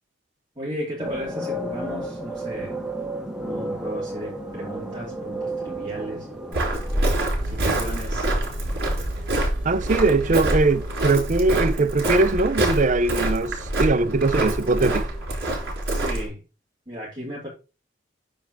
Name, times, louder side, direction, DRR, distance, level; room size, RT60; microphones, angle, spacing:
voice 1, 0.5-2.8 3.4-6.6 7.4-8.3 15.9-16.4 16.9-17.5, equal, 25° right, 3.0 m, -35 dB
sound 1, 1.0-15.7, right 1 dB, 5° right, 1.2 m, -35 dB
Walk footsteps, 6.5-16.3, right 1 dB, 55° right, 4.0 m, -26 dB
sound 2, 7.4-13.7, right 2 dB, 75° right, 1.4 m, -37 dB
voice 2, 9.6-15.1, right 3 dB, 40° right, 0.6 m, -21 dB
9.2 x 3.4 x 6.6 m
head